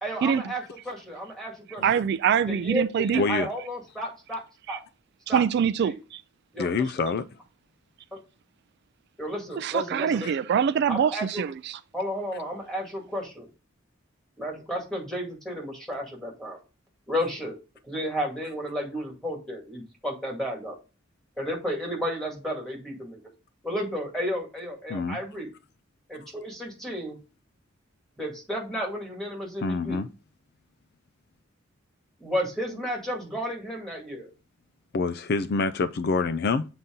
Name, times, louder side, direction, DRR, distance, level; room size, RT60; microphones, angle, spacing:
voice 1, 0.0-1.9 2.5-4.4 4.7-4.8 5.3-5.4 5.8-6.0 6.5-7.0 9.2-10.4 10.9-11.4 11.9-13.5 14.4-16.6 17.1-17.5 17.8-20.7 21.4-23.2 23.6-25.5 26.1-27.2 28.2-30.0 32.2-34.3, equal, ahead, 2.1 m, -32 dB
voice 2, 1.8-3.2 4.7-4.8 5.3-6.2 9.6-11.8, right 7 dB, 55° right, 0.3 m, -24 dB
voice 3, 3.2-3.5 6.6-7.2 24.9-25.2 29.6-30.1 34.9-36.6, left 4 dB, 55° left, 0.4 m, -26 dB
7.0 x 4.1 x 3.7 m
head